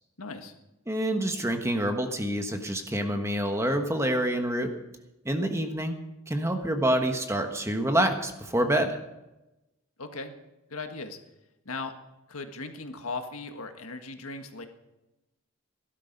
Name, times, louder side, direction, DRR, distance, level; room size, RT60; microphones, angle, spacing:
voice 1, 0.2-0.5 10.0-10.4 10.7-11.2 11.6-11.9 12.3-14.7, left 3 dB, 75° left, 6 dB, 1.6 m, -37 dB
voice 2, 0.9-4.7 5.2-6.0 6.3-9.0, right 1 dB, 15° right, 5 dB, 1.2 m, -27 dB
18.0 x 12.0 x 5.3 m, 0.97 s
head